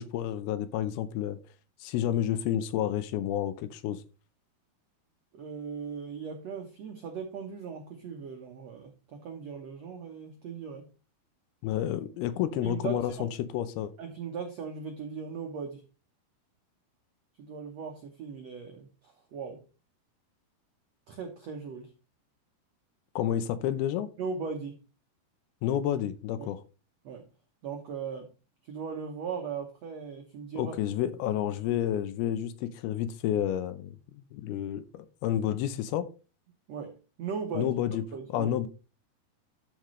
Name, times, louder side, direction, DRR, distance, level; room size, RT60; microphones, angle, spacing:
voice 1, 0.0-1.4 1.8-4.0 11.6-13.9 23.2-24.1 25.6-26.6 30.6-33.9 34.3-36.1 37.6-38.0 38.3-38.7, left 11 dB, 80° left, 2.5 m, -30 dB
voice 2, 5.3-10.9 12.6-13.3 14.0-15.8 17.4-19.6 21.1-21.9 24.2-24.8 26.4-26.5 27.0-27.3 27.6-28.3 28.7-30.8 36.7-37.7 38.1-38.5, right 6 dB, 75° right, 1.5 m, -38 dB
13.0 x 5.2 x 3.2 m
omnidirectional pair, 4.7 m